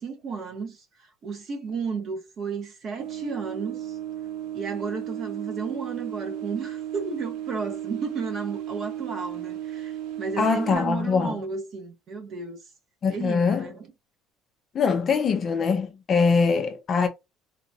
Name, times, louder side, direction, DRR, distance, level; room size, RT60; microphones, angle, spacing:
voice 1, 0.0-4.0 4.5-12.6 13.1-13.9, right 5 dB, 35° right, 1.2 m, -33 dB
sound 1, 3.0-10.8, right 12 dB, 75° right, 0.7 m, -34 dB
voice 2, 10.4-11.4 13.0-13.7 14.7-17.1, left 5 dB, 30° left, 0.5 m, -23 dB
3.9 x 2.4 x 2.7 m
cardioid pair, 165°, 0 cm